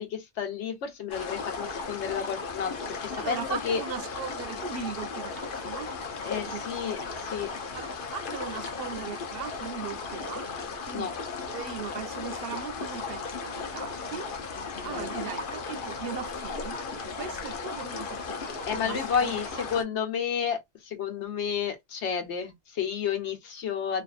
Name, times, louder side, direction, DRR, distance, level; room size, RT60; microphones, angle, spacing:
voice 1, 0.0-3.8 6.2-7.5 10.9-11.1 14.8-15.1 18.7-24.0, left 7 dB, 80° left, 1.1 m, -31 dB
sound 1, 1.1-19.8, left 4 dB, 55° left, 0.8 m, -36 dB
voice 2, 3.1-5.9 6.5-6.9 7.2-7.3 7.7-10.5 10.9-11.1 11.5-14.3 14.6-19.7, right 7 dB, 65° right, 0.7 m, -39 dB
2.6 x 2.5 x 2.3 m
omnidirectional pair, 1.2 m